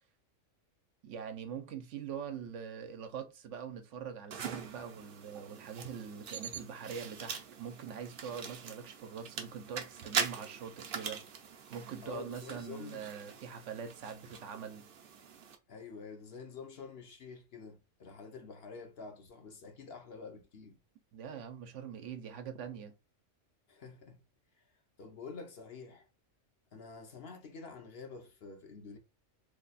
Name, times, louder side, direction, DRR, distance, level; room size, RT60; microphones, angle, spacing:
voice 1, 1.0-11.2 11.7-14.8 21.1-22.9, right 7 dB, 75° right, 1.0 m, -43 dB
sound 1, 4.3-15.5, right 6 dB, 55° right, 0.7 m, -42 dB
voice 2, 12.0-13.1 15.7-20.8 23.7-24.2 25.0-26.1 26.7-29.0, left 5 dB, 55° left, 0.9 m, -48 dB
3.2 x 2.3 x 4.0 m
omnidirectional pair, 1.3 m